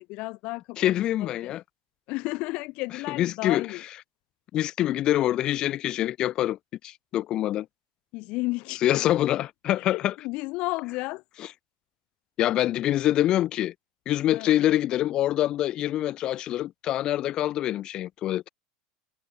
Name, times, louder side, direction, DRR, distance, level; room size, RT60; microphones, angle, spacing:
voice 1, 0.0-1.5 2.1-3.8 8.1-9.2 9.8-11.2 14.3-14.7, left 23 dB, 55° left, 4.6 m, -33 dB
voice 2, 0.8-1.6 3.2-3.7 4.5-6.6 6.8-7.7 8.8-10.1 12.4-13.7 14.1-18.4, left 13 dB, 40° left, 1.3 m, -25 dB
supercardioid pair, 150°, 2 cm